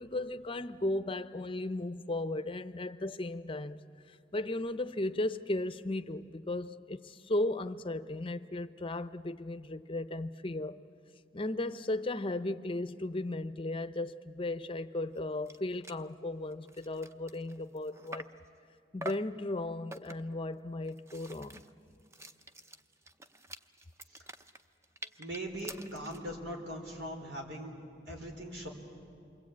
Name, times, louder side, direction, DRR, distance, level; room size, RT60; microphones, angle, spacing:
voice 1, 0.0-3.8 4.1-10.8 11.3-18.3 18.9-21.6, left 2 dB, 30° left, 0.6 m, -36 dB
sound 1, 15.2-15.3 15.5-15.6 15.8-16.1 16.5-18.5 19.0-19.4 19.9-20.4 20.8-26.3, right 1 dB, 15° right, 0.6 m, -47 dB
voice 2, 25.2-27.7 28.1-28.7, equal, 85° right, 4.6 m, -40 dB
28.5 x 23.0 x 8.6 m
head